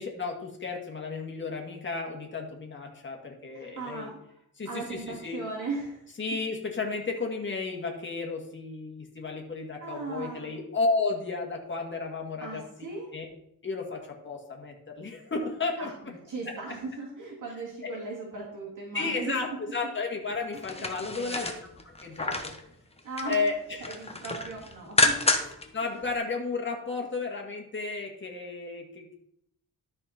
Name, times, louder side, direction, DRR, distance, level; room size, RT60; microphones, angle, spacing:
voice 1, 0.0-4.1 4.6-5.4 6.2-12.6 13.1-13.3 13.6-15.9 17.8-17.9 18.9-21.5 21.9-22.5 23.2-23.9 25.4-29.1, left 4 dB, 30° left, 1 dB, 1.8 m, -33 dB
voice 2, 3.5-4.2 4.7-6.0 9.8-10.5 12.4-13.1 15.8-19.4 20.5-21.5 23.0-23.4 23.8-25.3, right 3 dB, 55° right, -4 dB, 2.5 m, -38 dB
sound 1, 20.5-22.6 23.0-23.5 23.8-25.7 26.0-26.1, left 2 dB, 15° left, 1.1 m, -28 dB
13.0 x 4.4 x 4.3 m, 0.75 s
cardioid pair, 95°, 37 cm